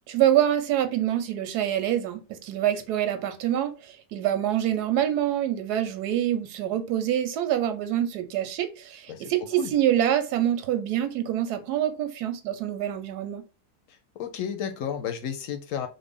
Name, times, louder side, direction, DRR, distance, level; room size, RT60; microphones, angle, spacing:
voice 1, 0.1-13.4, right 11 dB, 90° right, 1.2 m, -26 dB
voice 2, 13.9-15.9, left 8 dB, 65° left, 0.9 m, -32 dB
3.3 x 2.1 x 3.5 m
omnidirectional pair, 1.7 m